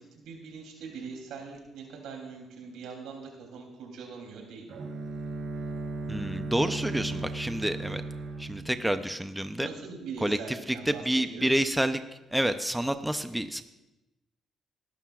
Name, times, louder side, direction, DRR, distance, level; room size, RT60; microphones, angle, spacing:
voice 1, 0.1-4.6 9.6-11.0 11.3-11.5, right 5 dB, 90° right, 1 dB, 3.1 m, -42 dB
Bowed string instrument, 4.7-9.6, right 3 dB, 75° right, 2.4 m, -36 dB
voice 2, 6.1-8.0 8.4-9.7 10.2-12.0 12.3-13.6, right 1 dB, 5° right, 9 dB, 0.6 m, -28 dB
19.0 x 12.0 x 2.4 m, 0.98 s
cardioid pair, 90°, 0 cm